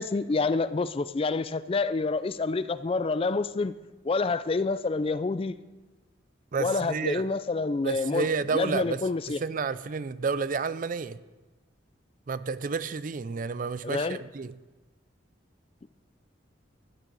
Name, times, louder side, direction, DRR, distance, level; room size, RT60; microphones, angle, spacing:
voice 1, 0.0-3.8 4.0-5.6 6.6-8.3 8.5-9.4 13.8-14.2, left 3 dB, 30° left, 0.3 m, -27 dB
voice 2, 6.5-7.2 7.8-9.0 9.4-11.2 12.3-14.5, right 4 dB, 45° right, 0.4 m, -30 dB
13.0 x 6.5 x 9.0 m
head